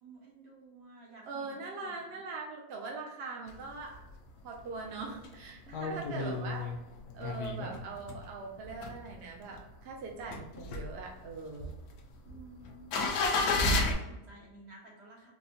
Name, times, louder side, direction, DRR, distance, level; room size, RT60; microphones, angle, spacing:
voice 1, 0.0-1.4 12.2-12.9 13.1-15.3, right 3 dB, 50° right, -4 dB, 1.2 m, -53 dB
voice 2, 1.2-4.0 4.4-6.7 7.1-11.7, right 4 dB, 65° right, 0 dB, 0.6 m, -42 dB
sound 1, 3.5-4.1 4.5-4.6 4.8-8.3 8.6-9.6 10.0-13.9, left 3 dB, 85° left, 1.2 m, -32 dB
4.3 x 2.1 x 2.7 m, 0.96 s
omnidirectional pair, 1.6 m